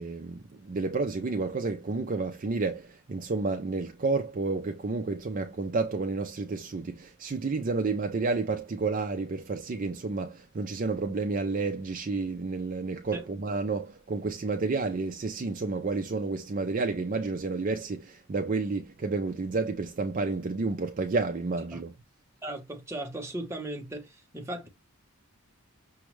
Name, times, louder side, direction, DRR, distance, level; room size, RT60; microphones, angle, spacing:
voice 1, 0.0-21.9, right 3 dB, 35° right, 0.4 m, -30 dB
voice 2, 22.4-24.7, right 1 dB, 10° right, 0.9 m, -37 dB
6.1 x 2.3 x 3.1 m
head